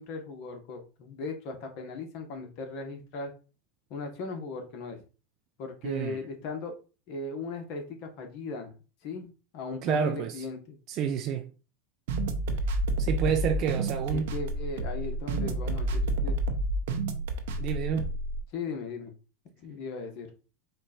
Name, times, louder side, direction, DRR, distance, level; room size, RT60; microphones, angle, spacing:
voice 1, 0.0-3.3 3.9-5.0 5.6-6.7 7.1-8.7 9.0-10.8 14.1-16.4 18.5-19.1 19.6-20.3, left 3 dB, 55° left, 1.3 m, -38 dB
voice 2, 5.8-6.2 9.8-10.4 10.9-11.5 13.0-14.3 17.6-18.1, right 7 dB, 45° right, 0.5 m, -29 dB
sound 1, 12.1-18.4, right 2 dB, 75° right, 0.8 m, -29 dB
4.5 x 2.5 x 4.3 m
hypercardioid pair, 110°, 0 cm